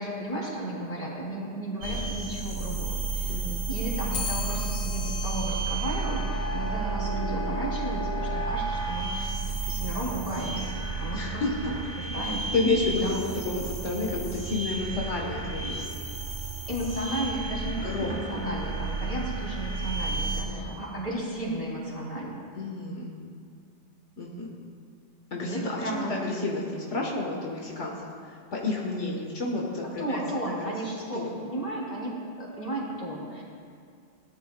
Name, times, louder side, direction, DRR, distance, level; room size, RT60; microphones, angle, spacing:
voice 1, 0.0-3.4 3.7-9.3 9.6-12.5 13.0-13.6 16.7-22.4 25.4-26.2 29.8-33.4, right 1 dB, 30° left, -5 dB, 3.3 m, -34 dB
sound 1, 1.8-20.4, right 3 dB, 85° right, 2.8 m, -32 dB
voice 2, 3.3-3.6 11.1-11.7 12.5-15.8 17.8-18.1 20.3-20.8 22.6-23.2 24.2-24.5 25.3-28.1 28.5-30.7 31.1-31.4, left 3 dB, 80° left, -2 dB, 1.7 m, -31 dB
Clock, 4.1-13.5, left 7 dB, 45° left, 0.6 m, -44 dB
19.0 x 12.0 x 2.3 m, 2.2 s
omnidirectional pair, 1.2 m